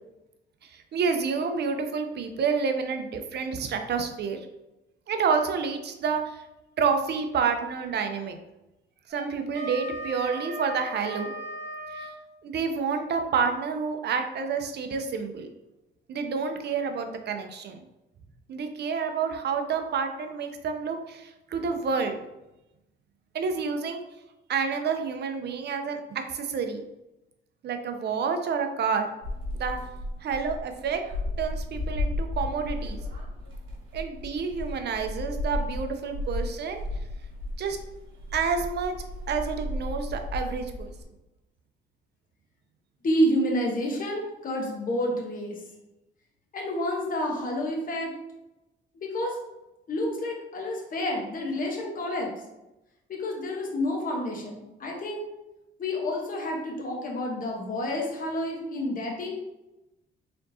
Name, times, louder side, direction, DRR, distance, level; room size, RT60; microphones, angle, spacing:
voice 1, 0.6-4.4 5.1-6.4 6.8-8.4 9.1-11.3 11.9-12.1 12.4-15.5 16.1-17.8 18.5-22.2 23.3-24.0 24.5-26.8 27.6-29.1 29.5-29.8 30.2-31.0 31.4-33.0 33.9-36.8 37.6-37.8 38.3-39.0 39.3-40.9, right 5 dB, 60° right, 6 dB, 0.6 m, -29 dB
Wind instrument woodwind instrument, 9.1-12.2, right 1 dB, 35° right, 1.1 m, -37 dB
sound 1, 29.2-41.0, left 1 dB, 85° right, 1.3 m, -34 dB
voice 2, 43.0-45.6 46.5-48.1 49.0-49.4 49.9-52.3 53.1-55.3 55.8-59.3, equal, 45° left, -1 dB, 1.1 m, -29 dB
4.4 x 3.7 x 2.7 m, 0.96 s
cardioid pair, 90°, 20 cm